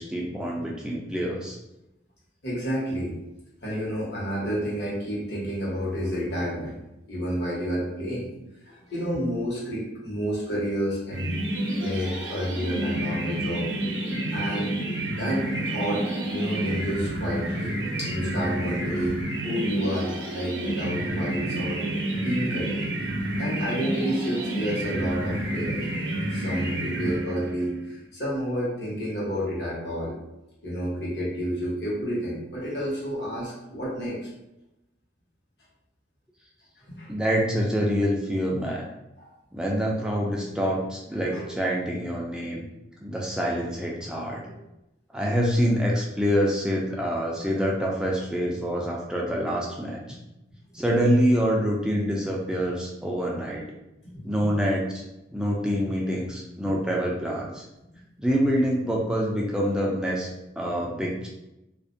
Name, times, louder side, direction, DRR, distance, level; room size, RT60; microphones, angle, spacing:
voice 1, 0.0-1.6 37.1-38.8 39.5-42.7 43.0-44.4 45.1-50.2 50.7-53.6 54.2-55.0 55.3-57.6 58.2-60.3 60.6-61.3, equal, 5° right, -3 dB, 0.3 m, -26 dB
voice 2, 2.4-3.1 3.6-6.7 7.1-8.3 8.6-11.4 11.8-13.7 14.3-14.8 15.1-19.2 19.4-21.8 22.2-22.8 23.4-25.8 26.3-30.1 30.6-34.2 36.9-37.1 39.2-39.3 41.2-41.5 44.4-44.5 54.0-54.3 60.7-60.9, equal, 65° left, -7 dB, 1.1 m, -30 dB
sound 1, 11.1-27.7, right 1 dB, 75° right, 0.5 m, -29 dB
2.4 x 2.1 x 2.5 m, 0.92 s
head